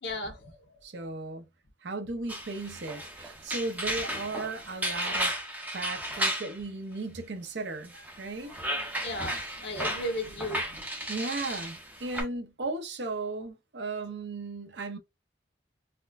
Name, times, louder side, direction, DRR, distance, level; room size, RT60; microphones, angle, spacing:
voice 1, 0.0-0.8 7.9-8.0 8.4-8.6 9.0-10.8, left 1 dB, 65° left, 1.0 m, -36 dB
voice 2, 0.8-1.5 1.8-5.3 5.7-7.9 8.2-8.5 11.1-15.0, right 3 dB, 65° right, 0.7 m, -36 dB
sound 1, 2.3-6.6 7.9-12.2, right 1 dB, 10° right, 0.7 m, -34 dB
4.2 x 2.2 x 2.4 m
head